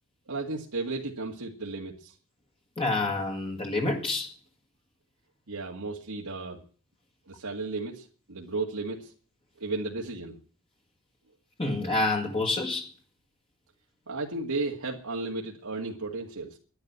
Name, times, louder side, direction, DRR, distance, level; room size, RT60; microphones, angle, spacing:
voice 1, 0.3-2.1 5.5-6.6 7.3-9.1 9.6-10.4 14.1-16.5, right 3 dB, 85° right, 2.1 m, -34 dB
voice 2, 2.8-4.3 11.6-12.9, left 2 dB, 25° left, 1.8 m, -28 dB
11.0 x 11.0 x 9.5 m
head